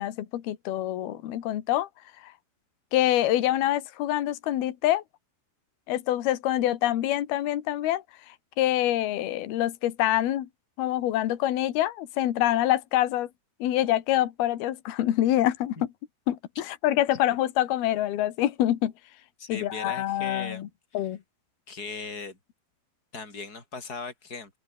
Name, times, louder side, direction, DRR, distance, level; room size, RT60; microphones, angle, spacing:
voice 1, 0.0-1.9 2.2-2.3 2.9-5.0 5.9-10.5 10.8-13.3 13.6-15.9 16.3-18.9 19.5-20.7 20.9-21.2, left 13 dB, 65° left, 3.6 m, -26 dB
voice 2, 19.4-20.6 21.7-22.4 23.1-24.5, left 4 dB, 20° left, 6.6 m, -38 dB
open air
omnidirectional pair, 4.9 m